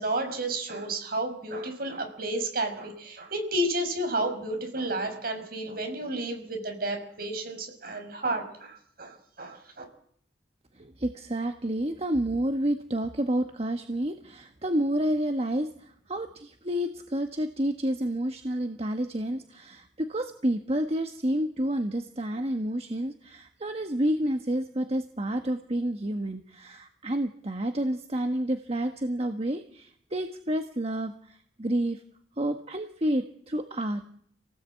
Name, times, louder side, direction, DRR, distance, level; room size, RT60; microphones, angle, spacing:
voice 1, 0.0-9.8, right 1 dB, 55° right, 5 dB, 5.6 m, -31 dB
voice 2, 10.7-32.0 32.4-34.2, right 1 dB, 35° right, 6 dB, 1.3 m, -29 dB
28.0 x 18.0 x 8.4 m, 0.65 s
head